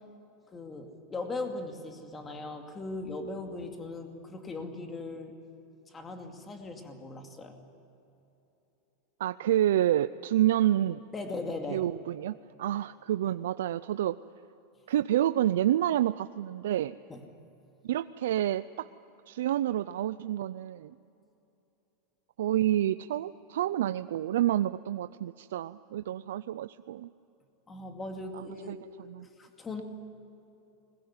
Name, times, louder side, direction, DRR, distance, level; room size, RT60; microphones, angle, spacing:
voice 1, 0.5-5.3 5.9-7.6 11.1-11.8 17.1-17.2 27.7-29.8, left 2 dB, 15° left, 4 dB, 2.4 m, -39 dB
voice 2, 9.2-11.0 11.7-14.2 14.9-17.0 17.8-18.9 19.3-20.9 22.4-27.1 28.3-28.8 29.1-29.3, right 12 dB, 90° right, 13 dB, 0.5 m, -28 dB
21.5 x 21.0 x 9.7 m, 2.9 s
supercardioid pair, 155°, 0 cm